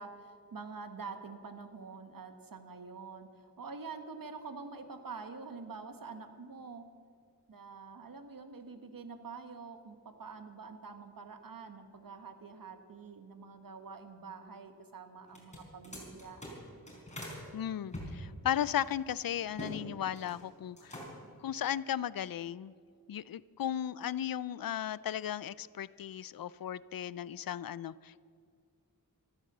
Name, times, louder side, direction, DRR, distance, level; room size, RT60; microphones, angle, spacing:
voice 1, 0.0-6.8 7.5-16.4, right 4 dB, 75° right, 7 dB, 1.4 m, -46 dB
sound 1, 15.3-17.4 17.9-19.8 20.0-20.4 20.7-21.3, equal, 20° left, 4.7 m, -44 dB
voice 2, 17.5-21.0 21.4-22.7 23.1-28.2, left 10 dB, 80° left, 19 dB, 0.5 m, -36 dB
14.0 x 13.0 x 6.7 m, 2.2 s
wide cardioid pair, 90°, 34 cm